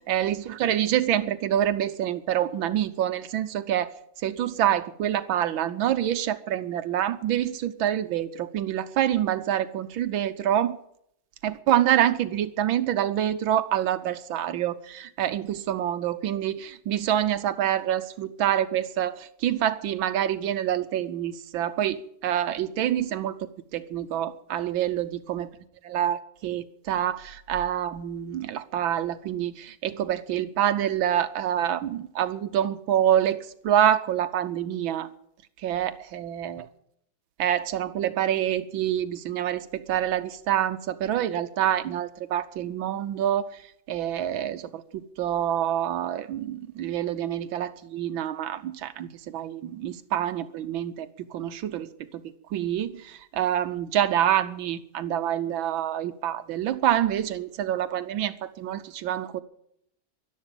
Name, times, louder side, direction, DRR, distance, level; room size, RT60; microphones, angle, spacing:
voice 1, 0.1-3.9 4.2-10.8 11.4-23.3 23.7-25.5 25.8-33.4 33.6-35.1 35.6-36.6 37.4-43.5 43.9-51.9 52.5-59.4, right 11 dB, 80° right, 12 dB, 1.6 m, -26 dB
13.0 x 12.0 x 8.9 m, 0.73 s
omnidirectional pair, 2.2 m